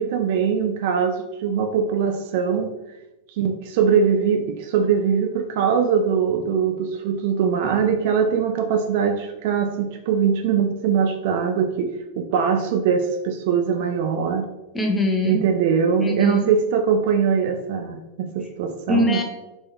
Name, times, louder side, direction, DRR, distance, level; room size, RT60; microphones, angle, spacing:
voice 1, 0.0-2.7 3.4-14.4 15.2-19.2, right 6 dB, 50° right, 5 dB, 0.3 m, -22 dB
voice 2, 14.7-15.4 16.0-16.5 18.4-18.5 18.9-19.2, left 2 dB, 10° left, 2 dB, 0.6 m, -22 dB
3.5 x 2.6 x 2.8 m, 1.0 s
figure-of-eight pair, 90°, 0 cm